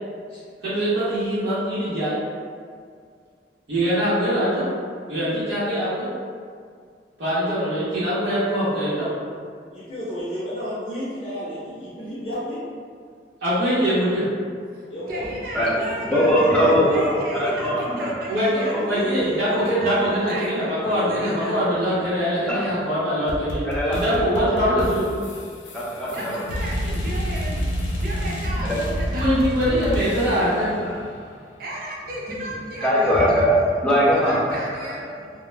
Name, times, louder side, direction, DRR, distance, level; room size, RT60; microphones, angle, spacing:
voice 1, 0.6-2.2 3.7-4.7 5.1-6.1 7.2-9.1 13.4-14.3 18.3-25.1 29.1-30.7, equal, 85° right, -12 dB, 0.8 m, -23 dB
voice 2, 9.7-12.6 14.9-15.2, equal, 35° left, -12 dB, 0.7 m, -32 dB
voice 3, 14.7-20.0 20.3-21.5 26.1-27.7 28.0-29.3 31.6-33.3 34.1-35.1, right 1 dB, 55° right, -4 dB, 0.5 m, -34 dB
voice 4, 16.0-18.2 18.6-18.9 19.8-19.9 20.8-21.0 22.5-22.7 23.2-23.3 23.6-24.8 25.7-26.5 28.6-28.8 30.5-31.0 32.8-34.9, equal, 5° left, -7 dB, 0.4 m, -22 dB
sound 1, 23.3-30.7, equal, 80° left, 0.4 m, -28 dB
2.2 x 2.0 x 3.1 m, 2.1 s
head